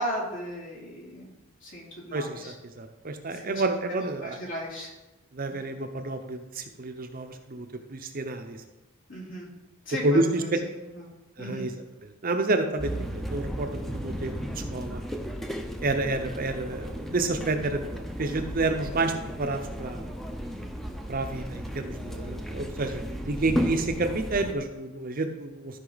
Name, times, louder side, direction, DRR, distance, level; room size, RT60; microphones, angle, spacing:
voice 1, 0.0-1.3 1.6-2.5 3.3-3.6 3.9-4.9 9.1-9.5 9.8-10.5 10.9-11.0 11.4-11.6, equal, 60° left, -3 dB, 2.9 m, -36 dB
voice 2, 2.1-4.4 5.3-8.6 10.0-10.6 11.4-11.7 12.0-15.0 15.8-20.0 21.1-25.8, right 2 dB, 40° right, 6 dB, 0.7 m, -29 dB
sound 1, 12.8-24.5, equal, ahead, 0.7 m, -34 dB
13.0 x 5.5 x 4.0 m, 1.0 s
head